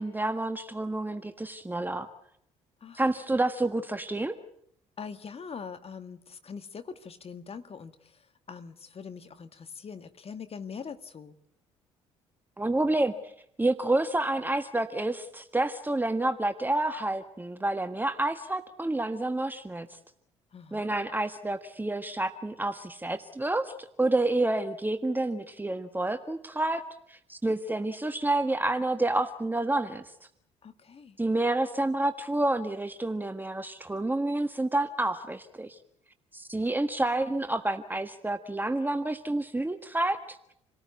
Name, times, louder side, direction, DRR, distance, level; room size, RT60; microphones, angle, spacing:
voice 1, 0.0-2.1 2.9-4.3 12.6-13.3 13.6-19.9 20.7-26.8 27.1-30.0 31.2-35.8 36.3-40.4, right 2 dB, 10° right, 9 dB, 1.5 m, -29 dB
voice 2, 5.0-11.4 20.5-20.9 30.6-31.2, left 6 dB, 40° left, 10 dB, 1.8 m, -43 dB
28.5 x 18.5 x 8.4 m, 0.73 s
hypercardioid pair, 50°, 16 cm